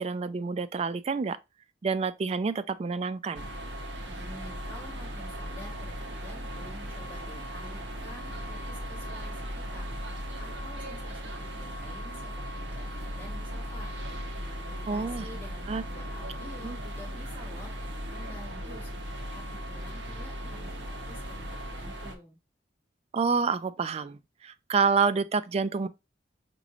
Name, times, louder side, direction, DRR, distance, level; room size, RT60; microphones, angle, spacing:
voice 1, 0.0-1.4 1.8-3.5 14.9-15.3 15.7-15.8 16.6-16.8 23.1-25.9, right 5 dB, 35° right, 0.3 m, -28 dB
sound 1, 3.3-22.2, equal, 80° right, 0.9 m, -37 dB
voice 2, 4.0-22.4, left 1 dB, 10° left, 1.7 m, -49 dB
5.0 x 3.1 x 2.4 m
head